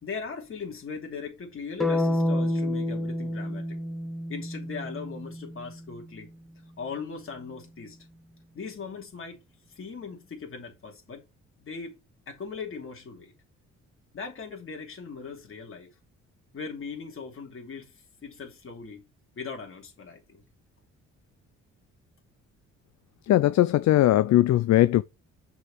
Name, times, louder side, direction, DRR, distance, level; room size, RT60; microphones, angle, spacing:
voice 1, 0.0-3.8 4.3-6.3 6.8-8.0 8.5-9.4 9.7-11.2 11.6-12.0 12.3-13.3 14.1-16.0 16.5-19.0 19.4-20.4, left 5 dB, 45° left, 2.9 m, -39 dB
sound 1, 1.8-5.8, left 1 dB, ahead, 1.1 m, -29 dB
voice 2, 23.3-25.0, left 14 dB, 65° left, 0.5 m, -20 dB
6.5 x 4.8 x 4.6 m
cardioid pair, 90°, 30 cm